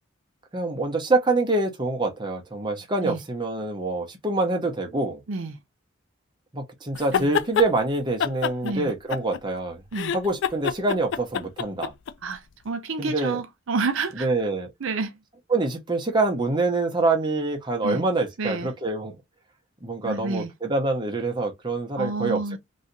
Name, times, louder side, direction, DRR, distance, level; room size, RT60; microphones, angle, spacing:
voice 1, 0.5-5.2 6.5-9.8 10.1-11.9 13.0-13.4 14.1-14.7 15.5-19.2 19.8-22.6, right 2 dB, 20° right, 0.7 m, -25 dB
sound 1, 7.0-7.7 8.2-9.6 9.9-12.1, left 7 dB, 60° left, 0.3 m, -26 dB
voice 2, 12.2-14.3 14.8-15.1 17.8-18.0 18.4-18.7 20.0-20.5 22.0-22.6, right 3 dB, 75° right, 0.6 m, -29 dB
3.1 x 2.7 x 2.6 m
head